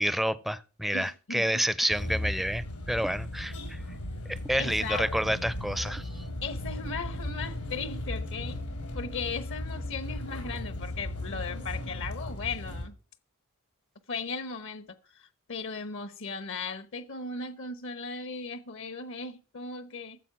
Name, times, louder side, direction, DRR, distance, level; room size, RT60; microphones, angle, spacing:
voice 1, 0.0-3.8 4.3-6.2, equal, ahead, 0.5 m, -29 dB
voice 2, 0.9-1.6 4.5-5.0 6.4-8.6 8.9-12.9 14.1-20.2, left 4 dB, 60° left, 1.0 m, -37 dB
sound 1, 1.9-12.9, left 1 dB, 90° left, 4.5 m, -36 dB
13.5 x 7.5 x 5.9 m
head